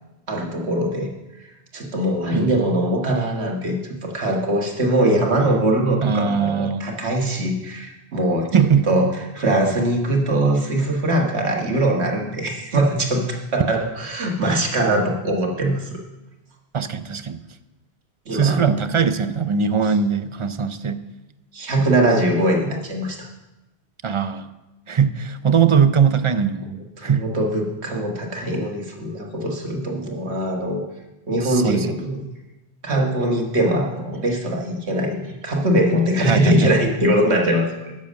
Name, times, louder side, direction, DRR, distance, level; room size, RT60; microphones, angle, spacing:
voice 1, 0.3-1.1 1.4-1.5 1.7-3.8 4.0-8.5 8.9-9.1 9.3-16.0 18.3-18.6 21.5-23.3 27.0-30.8 31.3-32.2 32.8-38.0, right 1 dB, 85° right, 1 dB, 1.8 m, -21 dB
voice 2, 6.0-6.9 8.5-8.9 16.7-17.4 18.3-21.0 24.0-24.5 24.9-27.3 31.4-32.0 36.2-36.8, right 6 dB, 45° right, 11 dB, 0.4 m, -20 dB
10.5 x 7.3 x 6.4 m, 1.0 s
omnidirectional pair, 1.1 m